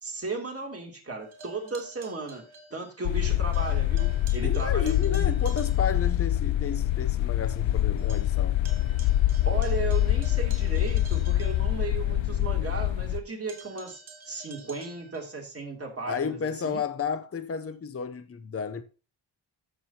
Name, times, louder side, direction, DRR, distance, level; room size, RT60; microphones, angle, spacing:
voice 1, 0.0-2.4 2.7-5.6 9.0-9.1 9.4-16.8, right 3 dB, 30° right, 3.0 m, -36 dB
sound 1, 1.2-3.3 3.5-6.2 6.6-6.7 7.1-7.2 7.5-12.3 13.5-15.4, right 3 dB, 75° right, 2.4 m, -50 dB
sound 2, 3.0-13.2, left 13 dB, 70° left, 0.6 m, -25 dB
voice 2, 4.4-8.6 16.1-18.8, left 6 dB, 30° left, 0.7 m, -32 dB
14.5 x 6.2 x 2.9 m
wide cardioid pair, 115°, 47 cm